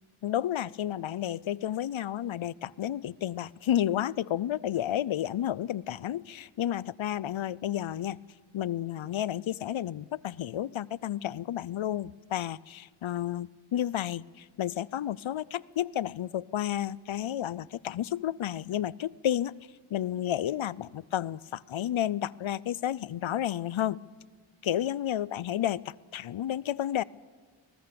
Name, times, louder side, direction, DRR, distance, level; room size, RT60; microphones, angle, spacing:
voice 1, 0.2-8.2 8.5-19.5 19.9-24.0 24.6-27.0, left 11 dB, 70° left, 22 dB, 0.5 m, -31 dB
21.0 x 20.0 x 6.9 m, 1.5 s
wide cardioid pair, 55°, 49 cm